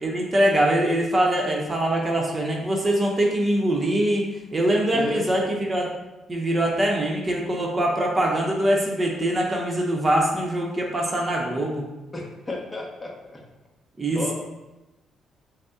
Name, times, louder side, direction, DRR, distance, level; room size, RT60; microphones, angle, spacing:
voice 1, 0.0-4.2 4.5-5.9 6.3-11.9 14.0-14.3, right 1 dB, 30° right, -1 dB, 0.7 m, -23 dB
voice 2, 4.9-5.5 12.1-13.4 14.1-14.3, left 2 dB, 20° left, -1 dB, 0.9 m, -32 dB
5.1 x 2.1 x 3.7 m, 1.0 s
cardioid pair, 90°, 0 cm